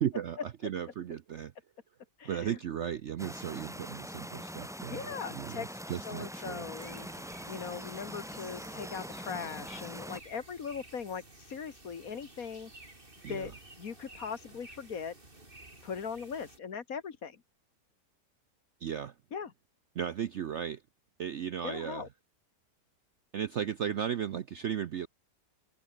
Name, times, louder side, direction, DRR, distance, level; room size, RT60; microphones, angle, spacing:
voice 1, 0.0-1.5 2.2-6.7 13.2-13.5 18.8-19.1 19.9-20.8 21.2-22.1 23.3-25.1, right 9 dB, 60° right, 0.7 m, -35 dB
voice 2, 2.2-2.6 4.9-5.7 6.0-7.1 7.5-12.7 13.3-15.1 15.8-17.4 19.3-19.5 21.6-22.1, left 6 dB, 55° left, 1.9 m, -40 dB
sound 1, 3.2-10.2, equal, ahead, 2.8 m, -43 dB
sound 2, 6.8-16.6, right 2 dB, 30° right, 4.8 m, -53 dB
omnidirectional pair, 1.8 m